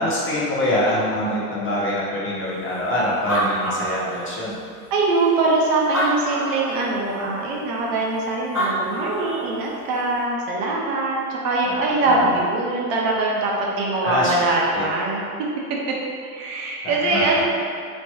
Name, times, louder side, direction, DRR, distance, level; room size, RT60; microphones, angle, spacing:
voice 1, 0.0-4.6 11.6-12.4 14.0-14.9 16.8-17.4, left 1 dB, 25° left, -5 dB, 0.7 m, -25 dB
Animal, 2.8-2.9 3.1-4.5 5.2-5.3 5.8-6.8 8.3-8.4 8.5-9.5, right 1 dB, 5° right, 1.2 m, -26 dB
voice 2, 4.9-15.2 16.2-17.4, right 2 dB, 50° right, -3 dB, 0.6 m, -22 dB
3.0 x 2.8 x 2.2 m, 2.2 s
hypercardioid pair, 80°, 45 cm